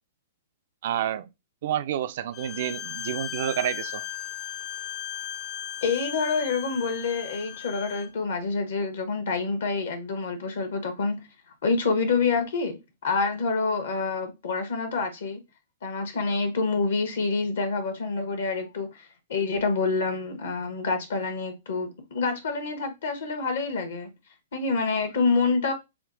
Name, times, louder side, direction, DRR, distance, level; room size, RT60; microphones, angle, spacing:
voice 1, 0.8-1.3 1.6-4.0, right 11 dB, 50° right, 0.3 m, -29 dB
Bowed string instrument, 2.3-8.1, left 11 dB, 30° left, 0.4 m, -36 dB
voice 2, 5.8-11.2 11.6-15.4 15.8-24.1 24.5-25.7, left 4 dB, 60° left, 1.0 m, -27 dB
5.7 x 2.2 x 2.5 m
figure-of-eight pair, 110°, 0 cm